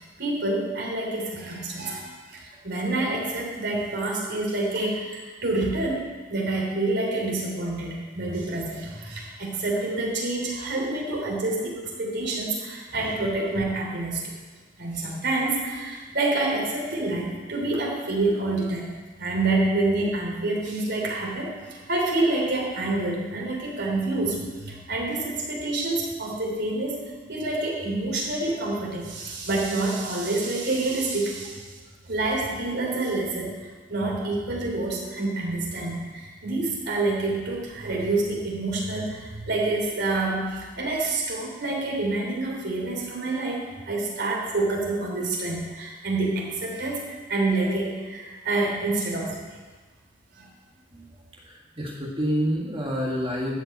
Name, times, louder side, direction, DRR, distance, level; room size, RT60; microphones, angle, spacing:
voice 1, 0.2-6.0 6.3-14.3 14.8-18.9 19.2-27.0 27.3-31.6 32.1-33.5 33.9-49.4 50.4-50.5, right 2 dB, 60° right, -2 dB, 3.1 m, -27 dB
voice 2, 51.4-53.5, equal, 30° right, -3 dB, 1.7 m, -28 dB
12.5 x 5.6 x 8.3 m, 1.4 s
head